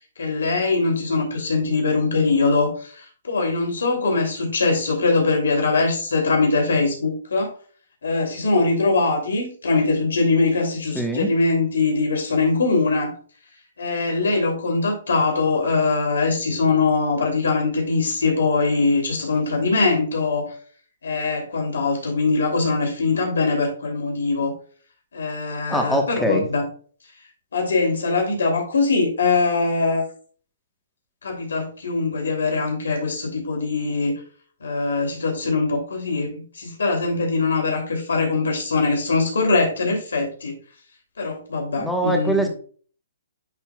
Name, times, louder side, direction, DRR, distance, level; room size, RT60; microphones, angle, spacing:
voice 1, 0.2-7.5 8.0-13.1 13.8-20.5 21.0-24.5 25.1-26.6 27.5-30.1 31.2-34.1 34.6-40.6 41.2-42.5, left 3 dB, 85° left, 1 dB, 2.7 m, -22 dB
voice 2, 10.9-11.3 25.7-26.5 41.8-42.5, right 1 dB, ahead, 2 dB, 1.1 m, -22 dB
10.0 x 4.4 x 2.2 m, 0.42 s
hypercardioid pair, 155°, 0 cm